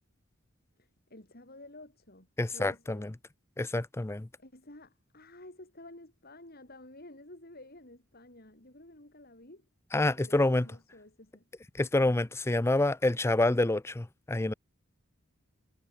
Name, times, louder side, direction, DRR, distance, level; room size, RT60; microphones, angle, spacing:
voice 1, 0.8-3.1 4.4-9.7 10.2-11.4, left 1 dB, 50° left, 5.4 m, -51 dB
voice 2, 2.4-3.1 3.6-4.3 9.9-10.6 11.7-14.5, left 2 dB, 10° left, 0.5 m, -27 dB
head